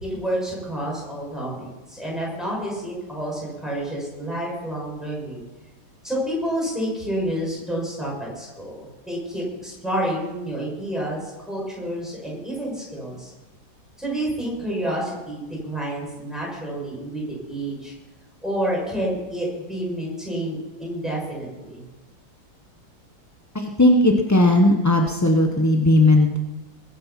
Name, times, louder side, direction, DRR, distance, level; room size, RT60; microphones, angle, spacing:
voice 1, 0.0-5.4 6.0-13.3 14.0-17.9 18.4-21.8, right 1 dB, ahead, -5 dB, 6.7 m, -29 dB
voice 2, 23.5-26.4, left 1 dB, 20° left, 2 dB, 0.5 m, -17 dB
21.0 x 8.7 x 5.9 m, 1.1 s
omnidirectional pair, 2.1 m